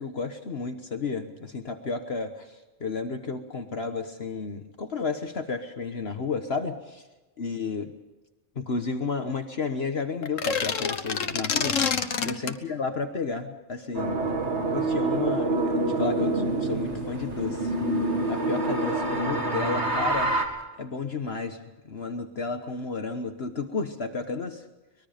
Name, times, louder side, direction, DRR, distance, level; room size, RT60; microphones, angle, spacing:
voice 1, 0.0-7.0 7.4-7.9 8.5-11.8 12.2-14.2 14.7-17.8 18.3-20.4 20.8-21.6 21.8-24.6, left 4 dB, 55° left, 6 dB, 1.4 m, -32 dB
sound 1, 10.2-12.6, left 6 dB, 85° left, 1.6 m, -27 dB
sound 2, 13.9-20.4, right 2 dB, 60° right, 2.7 m, -26 dB
24.5 x 21.5 x 5.1 m, 1.2 s
omnidirectional pair, 1.3 m